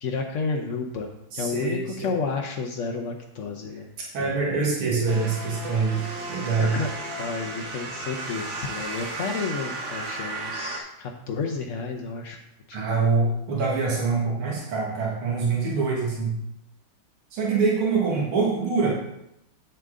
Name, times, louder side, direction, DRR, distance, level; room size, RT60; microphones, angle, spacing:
voice 1, 0.0-3.9 4.2-4.4 6.6-6.9 7.2-12.4 12.7-12.9, left 4 dB, 70° left, 2 dB, 0.7 m, -31 dB
voice 2, 1.3-2.1 4.1-6.0 6.3-6.7 12.7-16.4 17.3-18.9, right 4 dB, 85° right, -3 dB, 2.6 m, -24 dB
sound 1, 5.1-10.8, right 2 dB, 70° right, 2.0 m, -34 dB
8.0 x 7.2 x 3.7 m, 0.80 s
omnidirectional pair, 2.3 m